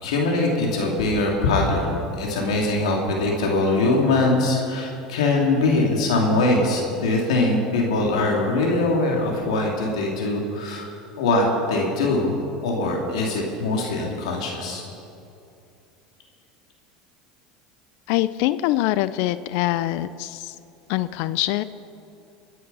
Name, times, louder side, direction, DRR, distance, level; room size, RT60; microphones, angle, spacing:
voice 1, 0.0-10.9 11.2-12.3 12.6-14.8, left 2 dB, 85° left, 0 dB, 2.7 m, -22 dB
voice 2, 18.1-20.6 20.9-21.6, left 15 dB, 65° left, 15 dB, 0.5 m, -24 dB
22.5 x 9.5 x 5.5 m, 2.6 s
supercardioid pair, 95°, 3 cm